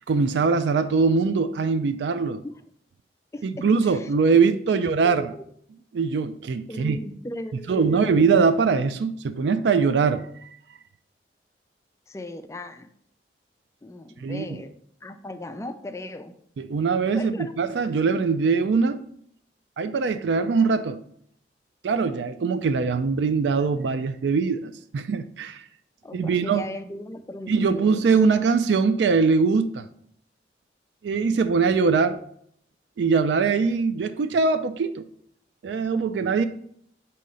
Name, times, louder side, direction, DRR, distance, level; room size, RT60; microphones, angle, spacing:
voice 1, 0.1-2.4 3.4-5.3 5.9-7.0 7.7-10.5 14.2-14.5 16.6-19.0 19.8-21.0 21.8-25.6 26.1-26.7 27.5-29.9 31.0-32.2 33.0-35.0 35.6-36.5, right 5 dB, 80° right, 0.4 m, -22 dB
voice 2, 3.3-4.1 4.6-5.4 6.7-8.2 12.1-12.9 13.8-14.7 15.0-16.3 17.2-17.7 26.0-27.9, left 1 dB, 15° left, 0.3 m, -37 dB
6.2 x 2.8 x 5.3 m
head